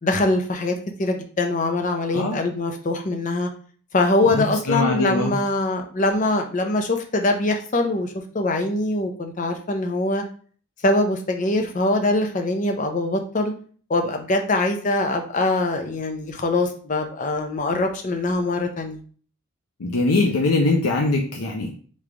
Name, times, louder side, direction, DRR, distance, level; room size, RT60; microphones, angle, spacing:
voice 1, 0.0-3.5 3.9-10.2 10.8-13.5 13.9-19.0, left 2 dB, 35° left, 4 dB, 0.6 m, -23 dB
voice 2, 4.3-5.3 19.8-21.7, left 3 dB, 85° left, 0 dB, 0.6 m, -22 dB
3.4 x 3.2 x 3.8 m, 0.44 s
head